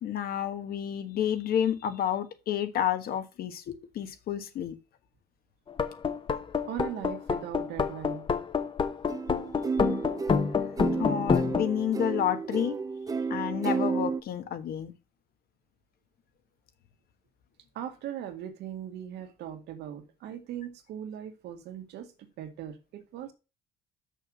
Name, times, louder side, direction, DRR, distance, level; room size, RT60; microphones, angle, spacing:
voice 1, 0.0-4.7 11.0-12.8 13.3-14.9, left 9 dB, 65° left, 1.4 m, -30 dB
sound 1, 5.7-11.7, left 6 dB, 30° left, 0.9 m, -27 dB
voice 2, 6.7-8.3 17.7-23.3, right 10 dB, 80° right, 1.9 m, -39 dB
sound 2, 9.1-14.2, right 5 dB, 20° right, 0.6 m, -32 dB
6.4 x 5.8 x 6.3 m
cardioid pair, 110°, 17 cm